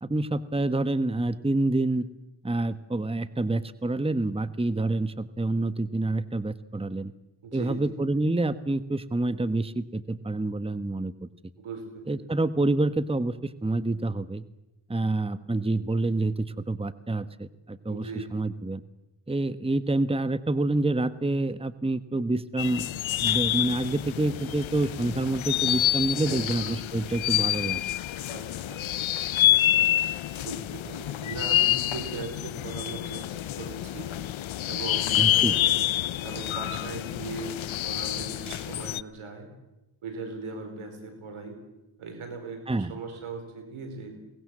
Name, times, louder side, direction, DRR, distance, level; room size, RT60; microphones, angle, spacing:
voice 1, 0.0-2.1 2.4-7.1 7.5-11.3 12.1-14.4 14.9-18.8 19.3-22.9 23.2-27.8 35.2-35.6 42.7-43.0, right 2 dB, 10° right, 14 dB, 1.2 m, -27 dB
voice 2, 7.4-8.1 11.6-12.3 17.9-18.3 26.1-26.7 28.3-28.9 30.4-34.1 34.7-35.8 36.2-39.5 40.0-41.6 42.0-44.1, right 3 dB, 85° right, 6 dB, 4.7 m, -39 dB
sound 1, 22.6-39.0, left 13 dB, 70° left, 0.7 m, -27 dB
22.5 x 19.0 x 7.7 m, 0.96 s
supercardioid pair, 40°, 48 cm